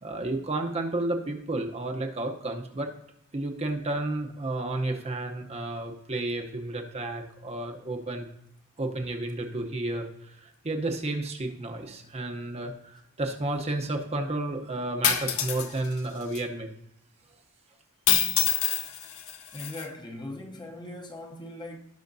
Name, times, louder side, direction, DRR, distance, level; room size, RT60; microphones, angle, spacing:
voice 1, 0.0-2.9 3.3-8.3 8.8-16.7, right 2 dB, 30° right, 0.8 m, -32 dB
sound 1, 15.0-15.7 16.3-16.4 18.1-19.8, left 10 dB, 65° left, 0.7 m, -26 dB
voice 2, 19.5-21.8, left 1 dB, 20° left, 0.8 m, -39 dB
17.0 x 5.7 x 2.6 m
head